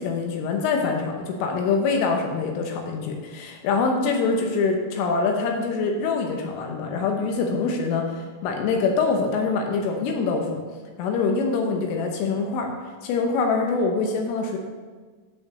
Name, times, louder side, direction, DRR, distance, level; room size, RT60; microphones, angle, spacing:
voice 1, 0.0-8.1 8.4-10.6 11.0-12.7 13.0-14.6, left 4 dB, 80° left, 2 dB, 3.4 m, -24 dB
8.8 x 5.8 x 6.7 m, 1.4 s
omnidirectional pair, 5.9 m